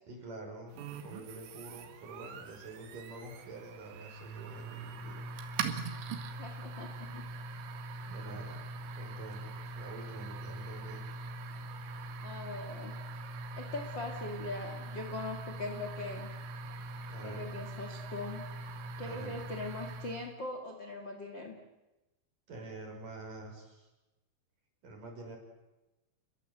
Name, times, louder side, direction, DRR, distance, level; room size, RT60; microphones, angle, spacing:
voice 1, 0.1-5.3 8.1-8.6 9.0-11.1 17.1-17.5 19.0-19.4 22.5-23.9 24.8-25.4, right 2 dB, 45° right, 2 dB, 7.0 m, -47 dB
sound 1, 0.8-20.3, right 3 dB, 75° right, 4.3 m, -42 dB
voice 2, 6.4-7.2 12.2-13.0 13.6-16.3 17.2-18.5 19.0-21.6, left 2 dB, 35° left, 4 dB, 2.0 m, -41 dB
30.0 x 22.0 x 8.0 m, 1.0 s
omnidirectional pair, 5.7 m